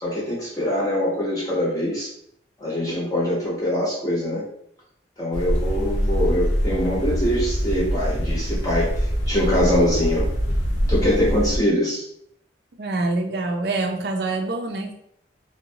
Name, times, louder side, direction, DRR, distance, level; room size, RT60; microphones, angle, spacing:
voice 1, 0.0-2.1 2.6-4.4 5.2-8.9 9.3-10.2 10.9-12.0, equal, 20° left, -6 dB, 0.7 m, -23 dB
sound 1, 5.3-11.6, equal, 70° left, 0.6 m, -24 dB
voice 2, 12.8-14.9, right 2 dB, 55° right, 3 dB, 0.4 m, -25 dB
2.8 x 2.1 x 2.6 m, 0.69 s
head